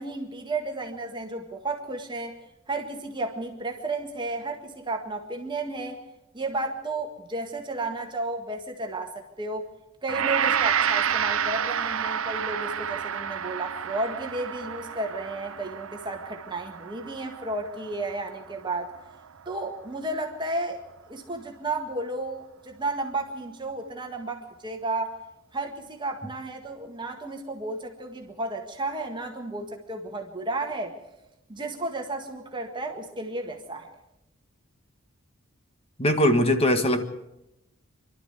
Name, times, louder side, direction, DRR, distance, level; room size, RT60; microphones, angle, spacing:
voice 1, 0.0-2.4 2.7-6.0 6.3-9.7 10.0-18.9 19.5-20.8 21.1-25.2 25.5-31.0 31.5-33.9, right 2 dB, 20° right, 3 dB, 1.8 m, -33 dB
Gong, 10.1-19.3, right 8 dB, 75° right, 0.8 m, -29 dB
voice 2, 36.0-37.1, left 1 dB, 30° left, 7 dB, 1.7 m, -21 dB
27.0 x 12.5 x 8.1 m, 0.91 s
head